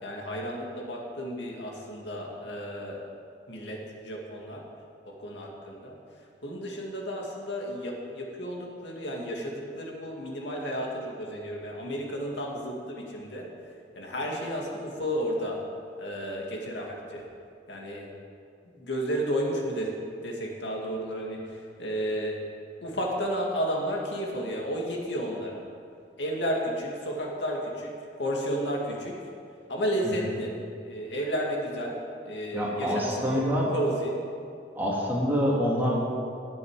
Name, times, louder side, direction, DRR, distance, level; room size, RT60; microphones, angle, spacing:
voice 1, 0.0-3.0 3.5-4.6 5.1-15.6 16.0-17.2 17.7-18.1 18.6-22.4 22.8-25.6 26.2-29.2 29.7-30.5 30.8-32.0 32.2-33.4 33.7-34.2, equal, 85° left, -1 dB, 2.2 m, -32 dB
voice 2, 32.5-33.7 34.7-36.0, equal, 10° right, -5 dB, 2.4 m, -26 dB
20.0 x 7.1 x 4.9 m, 2.5 s
head